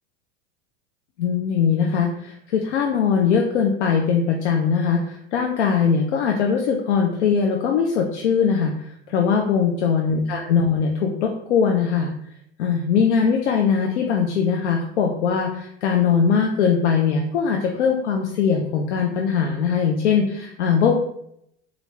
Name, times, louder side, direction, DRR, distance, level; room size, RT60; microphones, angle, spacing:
voice 1, 1.2-8.7 9.1-12.1 12.6-20.9, left 6 dB, 80° left, 1 dB, 0.6 m, -21 dB
4.8 x 2.5 x 3.1 m, 0.74 s
hypercardioid pair, 95°, 34 cm